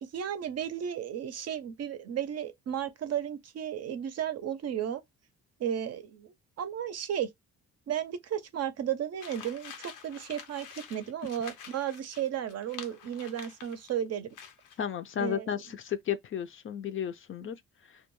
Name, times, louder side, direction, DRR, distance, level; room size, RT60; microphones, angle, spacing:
voice 1, 0.0-5.0 5.6-7.3 7.9-14.3 15.2-15.6, right 9 dB, 55° right, 0.6 m, -34 dB
sound 1, 9.2-14.0 14.3-14.8, left 7 dB, 90° left, 0.6 m, -47 dB
voice 2, 14.8-17.6, left 9 dB, 45° left, 0.4 m, -33 dB
2.2 x 2.1 x 3.0 m
cardioid pair, 90°, 30 cm